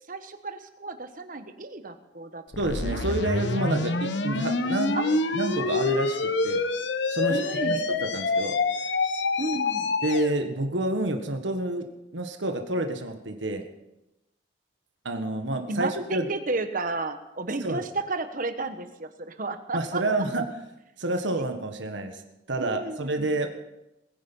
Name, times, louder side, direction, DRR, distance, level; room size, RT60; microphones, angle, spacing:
voice 1, 0.1-2.4 4.9-5.2 7.3-7.9 9.4-9.9 15.7-20.0 22.6-23.2, right 3 dB, 45° right, 9 dB, 1.2 m, -32 dB
sound 1, 2.5-10.3, left 3 dB, 70° left, 1.1 m, -27 dB
voice 2, 2.6-5.0 5.3-6.6 7.1-8.6 10.0-11.9 12.1-13.6 15.0-16.3 17.6-17.8 19.7-20.5 21.0-22.2 22.5-23.5, right 1 dB, 75° right, 5 dB, 1.6 m, -28 dB
21.0 x 10.0 x 5.5 m, 0.94 s
head